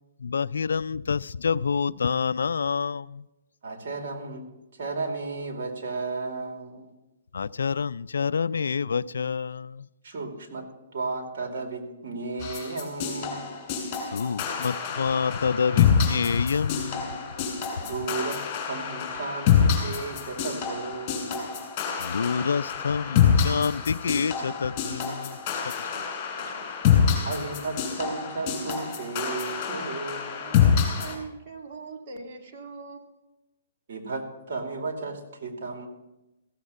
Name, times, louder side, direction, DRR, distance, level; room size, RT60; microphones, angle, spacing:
voice 1, 0.2-3.0 7.3-9.7 14.1-17.0 22.1-25.3, left 6 dB, 85° left, 18 dB, 0.3 m, -27 dB
voice 2, 3.6-4.5 4.7-6.9 10.0-13.4 17.8-21.5 26.4-26.7 27.2-30.6 33.9-35.9, right 3 dB, 55° right, 4 dB, 2.6 m, -34 dB
sound 1, 12.4-31.2, left 7 dB, 30° left, 3.3 m, -26 dB
voice 3, 30.3-33.0, right 4 dB, 35° right, 1 dB, 2.2 m, -41 dB
15.0 x 7.4 x 6.8 m, 0.98 s
hypercardioid pair, 150°, 0 cm